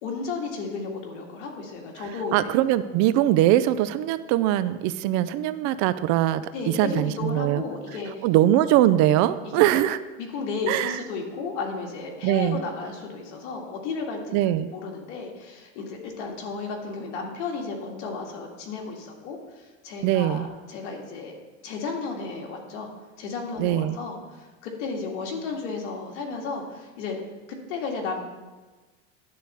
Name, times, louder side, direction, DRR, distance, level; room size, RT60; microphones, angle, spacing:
voice 1, 0.0-2.6 6.5-8.3 9.5-9.7 10.2-22.9 23.2-27.2 27.5-28.2, left 4 dB, 80° left, 1 dB, 1.9 m, -33 dB
voice 2, 2.0-7.6 8.2-10.0 10.7-11.0 12.2-12.6 14.3-14.7 20.0-20.5 23.6-24.0, right 13 dB, 55° right, 14 dB, 0.5 m, -22 dB
10.5 x 4.0 x 6.7 m, 1.3 s
supercardioid pair, 130°, 35 cm